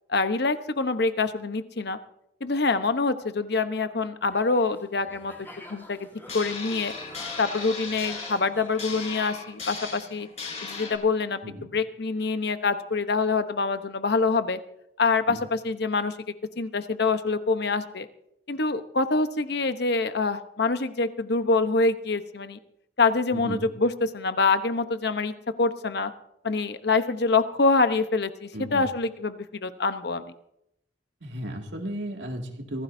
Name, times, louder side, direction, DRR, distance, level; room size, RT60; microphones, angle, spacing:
voice 1, 0.1-2.0 2.4-5.3 5.7-6.1 6.3-6.9 7.4-10.3 10.6-14.6 15.0-16.2 16.6-18.1 18.5-22.6 23.0-26.1 26.4-30.3, left 3 dB, 65° left, 10 dB, 0.9 m, -25 dB
sound 1, 4.2-9.3, left 1 dB, 15° left, 4.1 m, -47 dB
sound 2, 6.3-11.0, left 4 dB, 40° left, 4.3 m, -37 dB
voice 2, 23.3-23.7 28.5-28.9 31.2-32.8, equal, 85° right, 2 dB, 2.3 m, -35 dB
25.0 x 16.5 x 2.7 m, 0.79 s
head